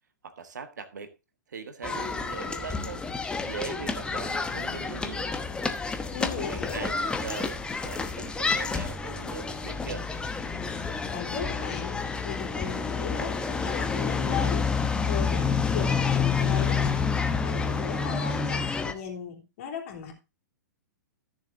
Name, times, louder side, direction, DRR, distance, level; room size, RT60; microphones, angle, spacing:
voice 1, 0.2-1.1 1.5-3.1 3.4-5.4 6.2-10.1, right 6 dB, 70° right, 1.5 m, -40 dB
sound 1, 1.8-18.9, left 5 dB, 10° left, 1.0 m, -29 dB
voice 2, 6.1-6.9 11.1-20.1, left 7 dB, 50° left, 3.1 m, -37 dB
14.5 x 7.0 x 2.8 m
figure-of-eight pair, 110°, 10 cm